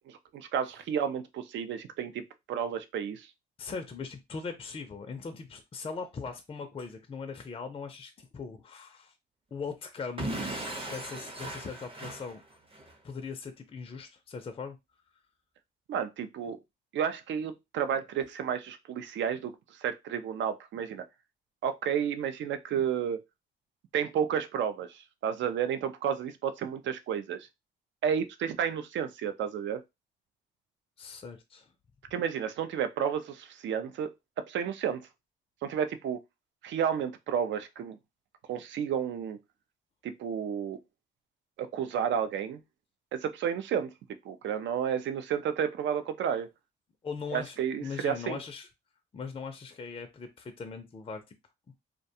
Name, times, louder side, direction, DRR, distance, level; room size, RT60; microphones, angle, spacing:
voice 1, 0.1-3.3 15.9-16.6 16.9-21.0 21.6-23.2 23.9-27.4 28.0-29.8 32.1-34.1 34.5-35.1 35.6-36.2 36.6-38.0 38.5-39.4 40.0-40.8 41.6-42.6 43.1-43.9 44.2-46.5 47.3-48.4, right 8 dB, 70° right, 0.5 m, -31 dB
voice 2, 3.6-9.1 9.5-10.3 10.9-12.4 13.0-14.8 31.0-31.7 47.0-48.7 49.1-51.4, left 5 dB, 30° left, 0.4 m, -40 dB
Explosion / Shatter, 10.2-12.9, right 1 dB, 30° right, 0.7 m, -37 dB
2.4 x 2.2 x 2.7 m
cardioid pair, 90°, 20 cm